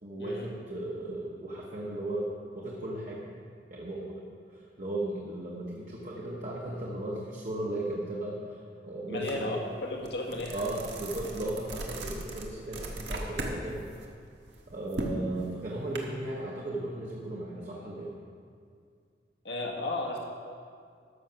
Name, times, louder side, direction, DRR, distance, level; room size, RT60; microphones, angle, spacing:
voice 1, 0.0-3.3 3.7-4.2 4.5-8.6 8.8-9.6 10.5-13.9 14.7-18.2, right 1 dB, 45° right, -4 dB, 1.2 m, -36 dB
voice 2, 9.1-10.6 19.4-20.3, left 2 dB, 75° left, -1 dB, 1.7 m, -34 dB
sound 1, 9.3-9.4 9.8-13.6 13.9-16.0, right 2 dB, 90° right, 1.4 m, -37 dB
13.0 x 6.6 x 5.9 m, 2.2 s
head